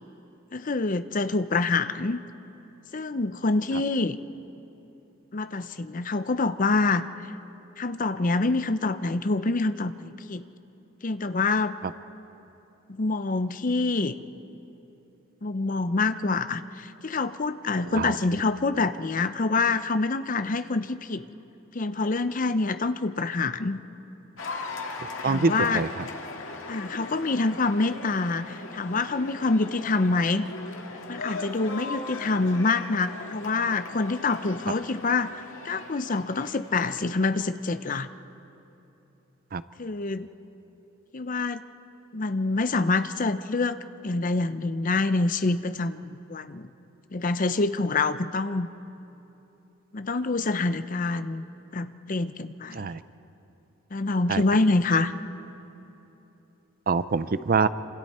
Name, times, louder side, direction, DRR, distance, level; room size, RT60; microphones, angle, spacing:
voice 1, 0.5-2.2 2.9-4.2 5.3-7.1 7.8-10.4 11.0-11.8 12.9-14.1 15.4-21.2 21.7-23.8 25.2-25.8 26.7-30.5 31.1-38.1 39.8-40.3 41.1-41.6 42.1-43.8 44.0-46.7 47.1-48.7 49.9-51.4 51.7-52.9 53.9-55.1, left 3 dB, 40° left, 12 dB, 0.6 m, -26 dB
Cheering / Applause, 24.4-37.8, left 3 dB, 75° left, 2.1 m, -39 dB
voice 2, 25.2-25.9 39.5-39.6 52.7-53.0 54.3-54.4 56.9-57.7, right 4 dB, 45° right, 14 dB, 0.5 m, -24 dB
28.0 x 26.5 x 4.3 m, 3.0 s
head